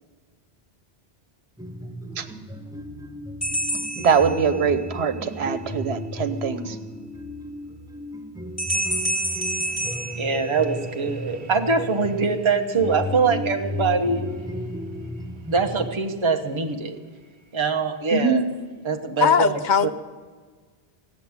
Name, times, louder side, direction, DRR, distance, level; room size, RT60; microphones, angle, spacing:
sound 1, 1.6-15.9, left 1 dB, 5° right, 0.5 m, -34 dB
sound 2, 3.4-4.9 8.6-11.1, right 1 dB, 15° left, 1.7 m, -28 dB
voice 1, 4.0-6.7 18.1-18.4, right 5 dB, 85° right, 10 dB, 1.2 m, -22 dB
voice 2, 8.7-14.2 15.5-17.0 17.5-18.4 18.8-19.9, right 4 dB, 30° right, 4 dB, 0.9 m, -24 dB
voice 3, 19.2-19.9, left 7 dB, 55° left, 11 dB, 0.7 m, -19 dB
16.0 x 7.2 x 9.5 m, 1.5 s
omnidirectional pair, 1.0 m